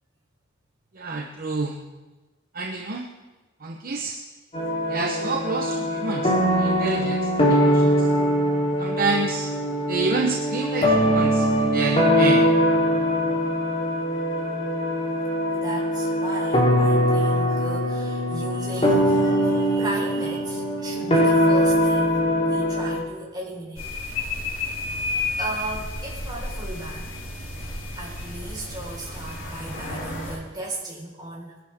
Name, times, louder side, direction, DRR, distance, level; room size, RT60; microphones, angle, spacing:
voice 1, 0.9-1.8 2.5-3.1 3.6-4.2 4.9-8.1 8.8-9.5 9.9-12.5, right 3 dB, 45° right, 1 dB, 0.9 m, -28 dB
sound 1, 4.5-23.0, equal, 30° left, 3.5 m, -22 dB
voice 2, 15.5-23.9 24.2-24.4 25.4-27.1 28.0-31.5, right 1 dB, 20° right, -4 dB, 4.7 m, -36 dB
sound 2, 23.8-30.4, left 3 dB, 70° left, 3.7 m, -32 dB
21.0 x 11.0 x 3.6 m, 1.2 s
head